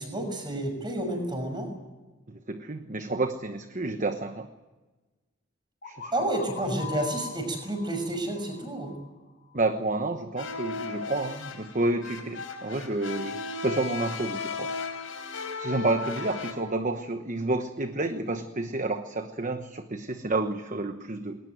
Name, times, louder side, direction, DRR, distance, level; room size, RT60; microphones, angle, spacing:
voice 1, 0.0-1.7 6.1-8.9, right 1 dB, 20° right, 5 dB, 6.2 m, -30 dB
voice 2, 2.3-4.5 5.9-6.1 9.5-14.7 15.6-21.4, right 2 dB, 40° right, 8 dB, 1.1 m, -30 dB
sound 1, 5.8-9.6, left 7 dB, 50° left, 3.4 m, -42 dB
sound 2, 10.4-16.5, left 4 dB, 80° left, 4.1 m, -35 dB
21.5 x 19.0 x 9.3 m, 1.2 s
head